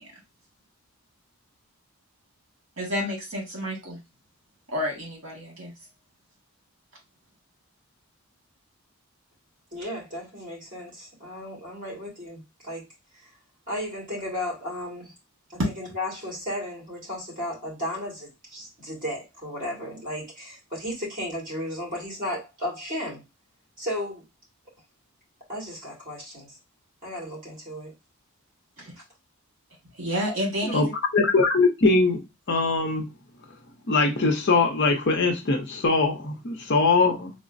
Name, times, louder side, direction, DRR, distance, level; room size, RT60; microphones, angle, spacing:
voice 1, 2.8-4.0 4.7-5.7 28.8-28.9 29.9-30.9, equal, 60° right, 1.5 m, -30 dB
voice 2, 9.7-12.8 13.1-13.3 13.7-15.1 15.5-23.2 23.8-24.2 25.5-26.6 27.0-27.9, left 1 dB, 35° right, 1.9 m, -34 dB
voice 3, 31.1-32.2 32.5-33.1 33.9-37.3, left 3 dB, 50° left, 0.6 m, -21 dB
3.9 x 2.0 x 2.5 m
head